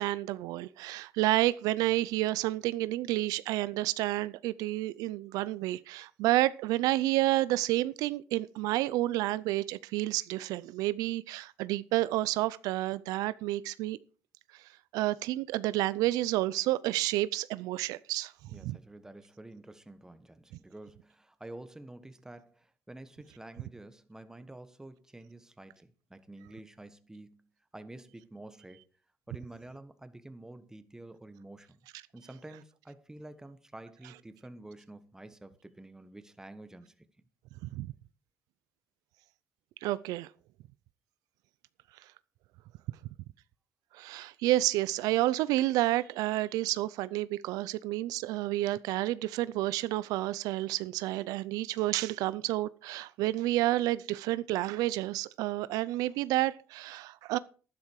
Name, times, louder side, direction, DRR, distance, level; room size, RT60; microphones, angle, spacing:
voice 1, 0.0-14.0 14.9-18.3 18.6-18.8 37.6-37.9 39.8-40.3 43.9-57.4, right 16 dB, 85° right, 0.5 m, -30 dB
voice 2, 18.5-27.5 27.7-28.9 29.3-31.8 32.1-37.0, right 1 dB, 10° right, 1.4 m, -49 dB
12.0 x 10.5 x 4.7 m
cardioid pair, 95°, 6 cm